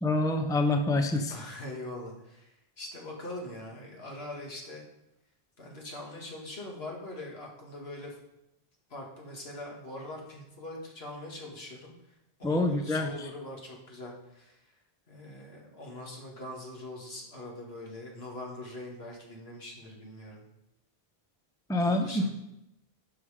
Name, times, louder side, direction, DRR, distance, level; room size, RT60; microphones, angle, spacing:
voice 1, 0.0-1.3 12.4-13.1 21.7-22.1, left 2 dB, 5° left, 5 dB, 0.6 m, -26 dB
voice 2, 1.3-4.8 5.6-8.1 8.9-11.9 12.4-14.6 15.1-20.5 21.8-22.3, left 1 dB, 75° left, -1 dB, 2.2 m, -42 dB
11.5 x 5.6 x 4.9 m, 0.86 s
omnidirectional pair, 1.1 m